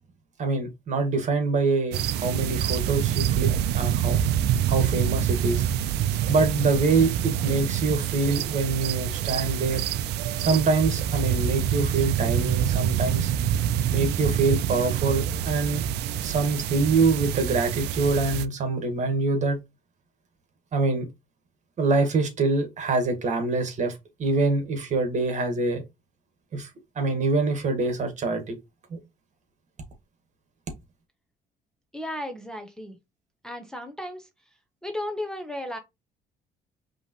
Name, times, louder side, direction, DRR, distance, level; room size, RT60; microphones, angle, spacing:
voice 1, 0.4-4.2 4.7-5.7 6.3-9.8 10.4-13.3 13.9-15.8 16.2-19.6 20.7-21.1 21.8-25.8 26.5-26.7 27.0-28.6 28.9-29.0, right 3 dB, 45° right, 1.7 m, -25 dB
sound 1, 1.9-18.5, right 10 dB, 80° right, 0.5 m, -26 dB
voice 2, 31.9-33.0 33.4-34.3 34.8-35.8, left 1 dB, 5° left, 0.9 m, -34 dB
5.3 x 3.1 x 3.0 m
cardioid pair, 110°, 17 cm